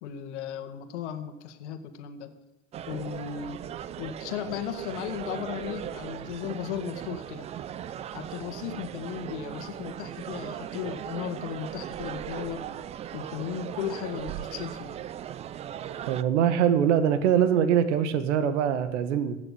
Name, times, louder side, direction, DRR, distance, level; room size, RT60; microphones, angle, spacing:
voice 1, 0.0-2.3 2.9-3.6 4.0-7.5 8.1-12.7 13.1-14.9, left 9 dB, 55° left, 8 dB, 1.9 m, -36 dB
sound 1, 2.7-16.2, right 10 dB, 15° right, 0.4 m, -38 dB
voice 2, 16.1-19.4, right 9 dB, 60° right, 11 dB, 1.5 m, -23 dB
16.5 x 6.7 x 10.0 m, 0.95 s
hypercardioid pair, 100°, 40 cm